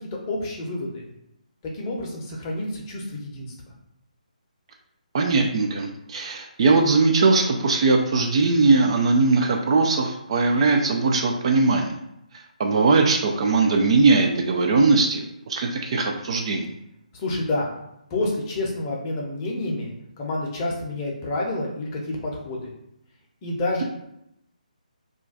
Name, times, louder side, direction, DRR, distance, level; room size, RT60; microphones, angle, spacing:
voice 1, 0.3-1.1 1.6-3.5 17.1-17.7 18.1-22.7 23.4-23.8, left 2 dB, 25° left, -2 dB, 0.7 m, -29 dB
voice 2, 5.1-12.0 12.6-16.7, right 3 dB, 45° right, 2 dB, 0.4 m, -20 dB
2.4 x 2.2 x 3.8 m, 0.80 s
figure-of-eight pair, 145°, 4 cm